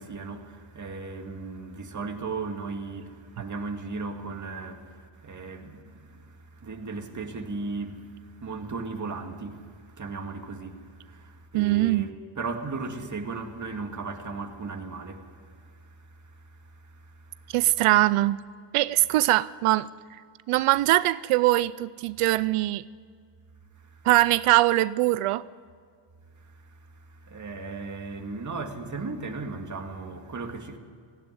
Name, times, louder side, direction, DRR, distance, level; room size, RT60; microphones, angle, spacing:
voice 1, 0.0-17.5 23.8-24.1 26.5-26.8 27.1-30.8, right 3 dB, 35° right, 2.3 m, -37 dB
voice 2, 11.5-12.1 17.5-18.4 18.7-19.9 20.5-22.8 24.0-25.4, right 16 dB, 85° right, 0.6 m, -22 dB
18.0 x 16.0 x 9.8 m
cardioid pair, 95°, 50 cm